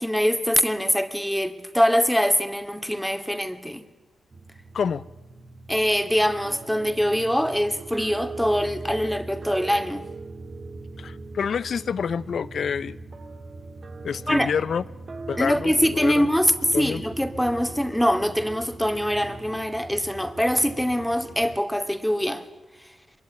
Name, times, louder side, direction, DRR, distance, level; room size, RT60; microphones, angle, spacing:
voice 1, 0.0-3.8 5.7-10.0 14.3-14.5 15.4-22.4 22.8-22.9, equal, 5° left, 2.6 m, -23 dB
sound 1, 4.3-21.6, right 3 dB, 50° right, 2.4 m, -40 dB
voice 2, 4.7-5.0 11.0-13.0 14.0-14.8 15.3-16.3 16.7-17.0, left 6 dB, 70° left, 0.8 m, -27 dB
23.0 x 22.5 x 9.8 m
supercardioid pair, 40°, 0 cm